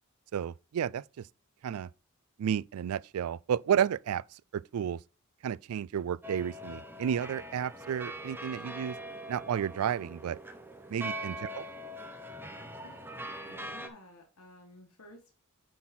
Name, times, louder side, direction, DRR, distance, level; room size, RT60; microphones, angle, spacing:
voice 1, 0.3-1.3 1.6-1.9 2.4-5.0 5.4-9.0 9.3-10.4 10.9-11.6, right 8 dB, 85° right, 0.3 m, -32 dB
sound 1, 6.2-13.9, right 1 dB, 10° right, 0.8 m, -42 dB
voice 2, 13.5-15.3, left 1 dB, 75° left, 1.5 m, -53 dB
9.4 x 4.2 x 4.3 m
head